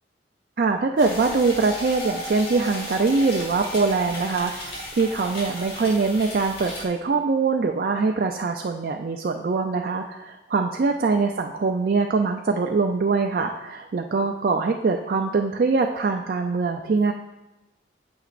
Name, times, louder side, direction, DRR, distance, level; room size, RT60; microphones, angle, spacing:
voice 1, 0.6-17.1, right 4 dB, 50° right, 3 dB, 0.4 m, -23 dB
sound 1, 1.0-6.8, equal, 90° left, 2.7 m, -35 dB
9.0 x 7.9 x 2.5 m, 1.0 s
head